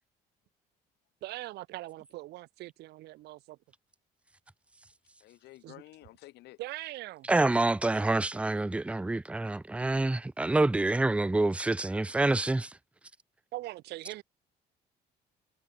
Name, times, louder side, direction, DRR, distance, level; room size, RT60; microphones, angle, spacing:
voice 1, 1.2-3.6 5.6-5.8 6.6-7.3 13.5-14.2, right 17 dB, 80° right, 2.0 m, -41 dB
voice 2, 5.2-6.6, left 17 dB, 80° left, 1.3 m, -51 dB
voice 3, 7.3-12.7, right 2 dB, 5° right, 0.6 m, -27 dB
cardioid pair, 110°, 17 cm